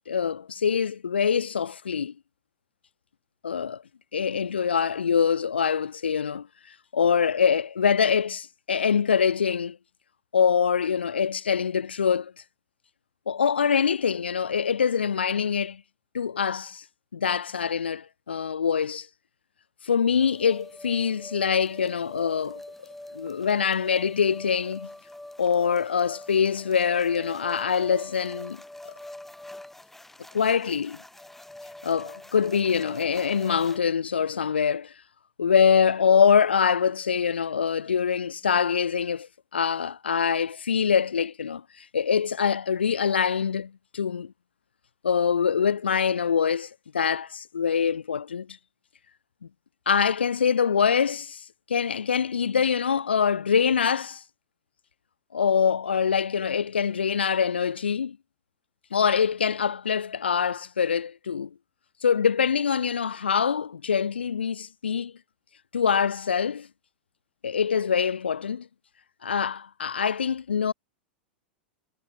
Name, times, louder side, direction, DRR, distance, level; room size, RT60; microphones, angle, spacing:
voice 1, 0.1-2.1 3.4-3.8 4.1-6.5 6.9-9.8 10.3-12.3 13.3-15.8 16.1-16.8 17.1-19.1 19.8-22.6 23.1-24.9 25.4-28.6 30.3-31.0 31.8-34.9 35.4-41.6 41.9-44.3 45.0-46.7 46.9-48.5 49.9-51.4 51.7-54.2 55.3-58.2 58.9-61.5 62.0-65.1 65.7-66.7 67.4-68.7 69.2-70.7, left 7 dB, 85° left, 0.8 m, -24 dB
sound 1, 20.2-33.8, left 1 dB, 5° left, 3.5 m, -44 dB
hypercardioid pair, 95°, 6 cm